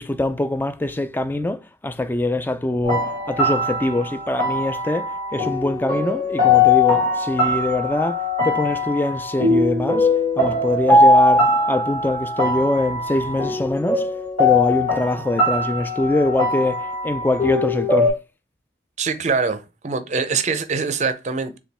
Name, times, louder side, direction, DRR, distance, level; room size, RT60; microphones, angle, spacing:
voice 1, 0.0-10.1 10.4-14.1 14.4-18.1, left 2 dB, 10° left, 0.3 m, -23 dB
sound 1, 2.8-18.1, left 2 dB, 35° left, 2.6 m, -20 dB
voice 2, 19.0-21.6, right 5 dB, 40° right, 0.5 m, -23 dB
6.9 x 2.3 x 3.4 m
head